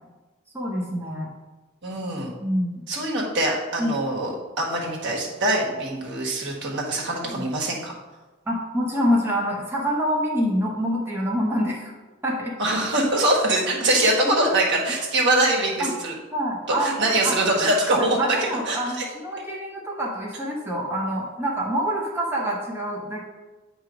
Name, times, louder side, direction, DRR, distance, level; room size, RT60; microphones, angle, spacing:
voice 1, 0.5-1.3 2.4-2.8 3.8-3.9 7.3-7.4 8.5-11.9 12.2-12.6 15.8-15.9 16.3-17.4 17.9-23.2, equal, 10° right, -3 dB, 0.8 m, -26 dB
voice 2, 1.8-2.3 2.9-7.9 12.6-16.1 16.7-19.0, right 1 dB, 60° right, -2 dB, 1.4 m, -23 dB
8.2 x 3.0 x 5.0 m, 1.2 s
head